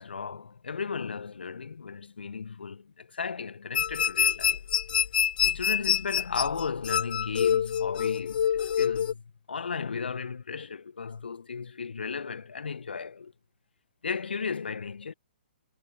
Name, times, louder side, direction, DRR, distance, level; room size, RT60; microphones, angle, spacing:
voice 1, 0.0-4.7 5.4-13.3 14.0-15.1, left 5 dB, 70° left, 1.2 m, -35 dB
sound 1, 3.7-9.1, left 9 dB, 55° left, 0.6 m, -26 dB
figure-of-eight pair, 125°, 6 cm